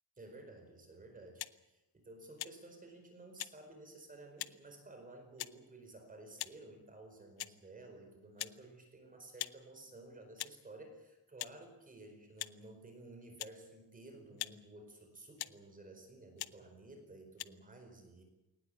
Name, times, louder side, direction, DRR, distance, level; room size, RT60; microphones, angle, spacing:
voice 1, 0.2-18.2, right 2 dB, 20° right, 5 dB, 4.6 m, -54 dB
sound 1, 1.4-1.6 2.4-2.6 3.4-3.5 4.4-4.6 5.4-5.5 6.4-6.6 7.4-7.6 8.4-8.6 9.4-9.6 10.4-10.6 11.4-11.6 12.4-12.5 13.4-13.6 14.4-14.6 15.4-15.6 16.4-16.5 17.4-17.5, left 14 dB, 80° left, 0.9 m, -42 dB
21.0 x 19.5 x 8.7 m, 0.97 s
wide cardioid pair, 165°, 37 cm